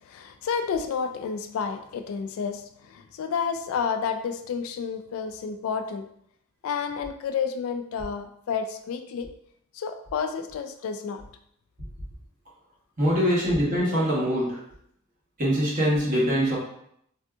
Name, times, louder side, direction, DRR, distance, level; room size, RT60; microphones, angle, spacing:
voice 1, 0.0-6.1 6.6-9.3 9.7-11.2, left 6 dB, 70° left, 9 dB, 0.3 m, -30 dB
voice 2, 13.0-14.6 15.4-16.6, equal, 40° right, -6 dB, 1.1 m, -23 dB
3.4 x 2.7 x 2.3 m, 0.71 s
head